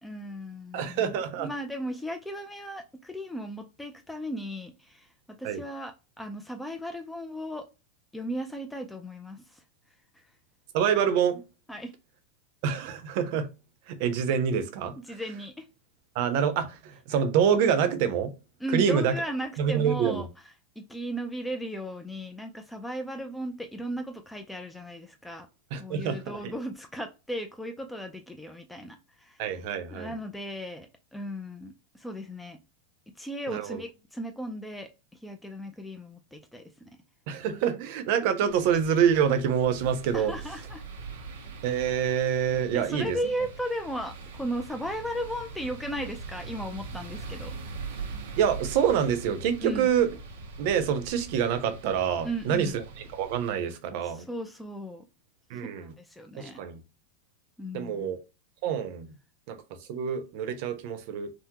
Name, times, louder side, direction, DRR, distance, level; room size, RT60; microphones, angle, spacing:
voice 1, 0.0-7.7 8.1-9.6 11.7-11.9 15.1-15.7 18.6-20.3 20.8-25.5 25.7-29.4 29.9-32.6 33.2-34.9 35.2-37.0 40.1-40.8 42.7-47.5 49.6-49.9 52.2-52.8 54.0-55.0 55.8-56.6 57.6-58.1, equal, 5° left, 0.3 m, -36 dB
voice 2, 0.7-1.5 5.4-5.6 10.7-11.4 12.6-13.5 13.9-14.9 16.1-18.3 18.7-19.1 19.6-20.2 25.7-26.5 29.4-30.1 33.5-33.8 37.3-40.3 41.6-43.2 48.4-50.1 50.6-52.8 53.1-54.3 55.5-55.9 56.3-56.8 57.7-58.2 58.6-59.1 59.5-59.6 59.9-61.3, right 8 dB, 45° right, 0.6 m, -26 dB
sound 1, 38.5-53.5, right 4 dB, 85° right, 0.9 m, -42 dB
3.5 x 2.0 x 2.9 m
supercardioid pair, 170°, 0 cm